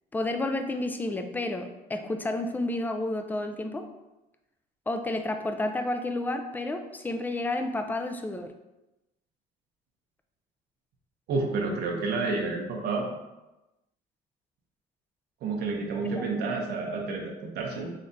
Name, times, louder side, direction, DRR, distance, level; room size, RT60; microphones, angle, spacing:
voice 1, 0.1-3.9 4.9-8.5 16.1-16.2, left 2 dB, 10° left, 6 dB, 0.3 m, -30 dB
voice 2, 11.3-13.1 15.4-17.9, right 3 dB, 70° right, 1 dB, 0.7 m, -30 dB
4.0 x 3.1 x 2.6 m, 1.0 s
cardioid pair, 110°, 17 cm